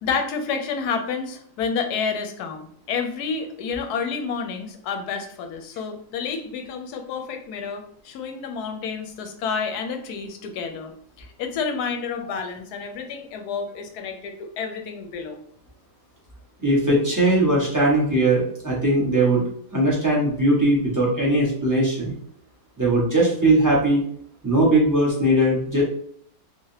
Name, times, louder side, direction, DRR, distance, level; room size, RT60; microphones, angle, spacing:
voice 1, 0.0-10.9 11.2-15.4, left 5 dB, 70° left, 5 dB, 1.1 m, -29 dB
voice 2, 16.6-19.4 19.7-22.1 22.8-24.0 24.4-25.8, right 1 dB, 15° right, -5 dB, 0.9 m, -19 dB
3.5 x 3.2 x 2.8 m, 0.62 s
omnidirectional pair, 1.9 m